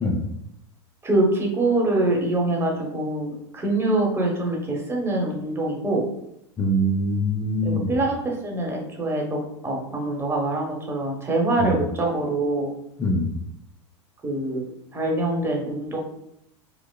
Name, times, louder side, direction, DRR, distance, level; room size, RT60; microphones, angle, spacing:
voice 1, 1.0-6.0 7.6-12.7 14.2-14.7 14.9-16.0, right 2 dB, 15° right, -1 dB, 0.9 m, -24 dB
voice 2, 6.6-7.9 11.6-11.8 13.0-13.3, equal, 20° left, -1 dB, 0.5 m, -23 dB
4.8 x 2.0 x 2.2 m, 0.77 s
hypercardioid pair, 100°, 15 cm